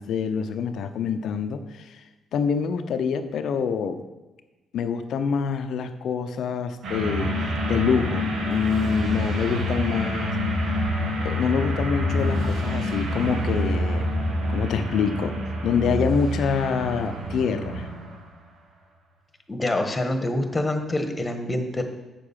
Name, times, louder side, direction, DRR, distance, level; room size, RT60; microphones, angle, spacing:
voice 1, 0.0-2.0 2.3-4.0 4.7-10.4 11.2-14.1 14.5-15.4 15.6-17.9, left 6 dB, 70° left, 9 dB, 0.7 m, -26 dB
sound 1, 6.8-18.3, equal, 75° right, 1.7 m, -27 dB
voice 2, 19.5-21.8, left 1 dB, 25° left, 6 dB, 1.5 m, -26 dB
7.5 x 6.8 x 5.7 m, 1.1 s
supercardioid pair, 55°, 0 cm